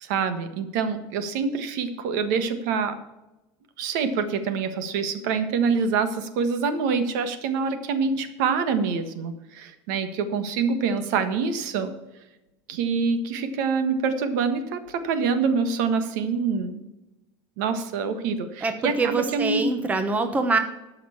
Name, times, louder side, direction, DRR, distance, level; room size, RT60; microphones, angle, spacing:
voice 1, 0.0-3.0 3.8-11.9 12.7-16.8 17.6-19.7, right 5 dB, 80° right, 10 dB, 1.5 m, -26 dB
voice 2, 18.6-20.6, right 4 dB, 15° right, 8 dB, 1.0 m, -24 dB
13.0 x 5.8 x 7.1 m, 1.0 s
cardioid pair, 155°, 10 cm